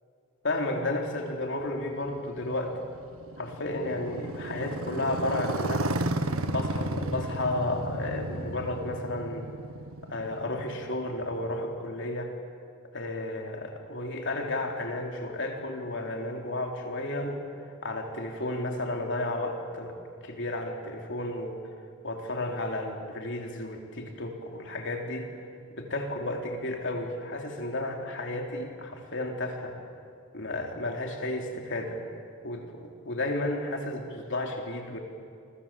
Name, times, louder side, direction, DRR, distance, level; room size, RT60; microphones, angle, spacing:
voice 1, 0.4-2.8 3.4-5.9 6.5-9.5 10.1-12.3 12.9-17.4 17.8-20.0 20.2-21.6 22.0-25.3 25.7-29.8 30.3-32.0 32.4-35.0, left 2 dB, 60° left, 2 dB, 3.5 m, -32 dB
Motorcycle, 1.6-11.6, right 2 dB, 85° right, 1.6 m, -34 dB
29.0 x 24.0 x 7.6 m, 2.4 s
head